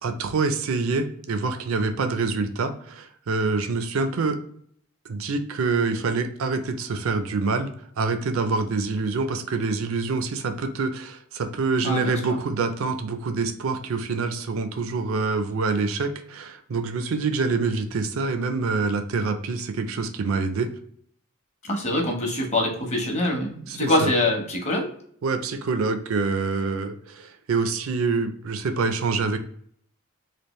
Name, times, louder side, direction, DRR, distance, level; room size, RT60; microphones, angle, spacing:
voice 1, 0.0-4.4 5.1-7.7 8.0-20.7 23.7-24.1 25.2-29.4, right 4 dB, 75° right, 8 dB, 0.5 m, -26 dB
voice 2, 11.8-12.4 21.7-24.9, left 1 dB, 35° left, 1 dB, 0.9 m, -24 dB
3.4 x 2.4 x 3.0 m, 0.63 s
head